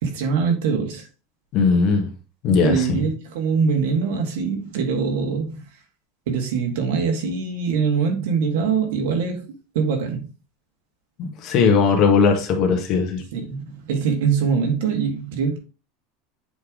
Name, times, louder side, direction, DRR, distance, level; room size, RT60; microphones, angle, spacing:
voice 1, 0.0-1.1 2.6-5.6 6.3-9.4 9.7-10.3 13.3-15.6, right 5 dB, 80° right, 1.9 m, -23 dB
voice 2, 1.5-2.1 2.4-3.0 11.2-13.2, left 5 dB, 40° left, 1.4 m, -19 dB
8.0 x 3.4 x 3.8 m
supercardioid pair, 160°, 0 cm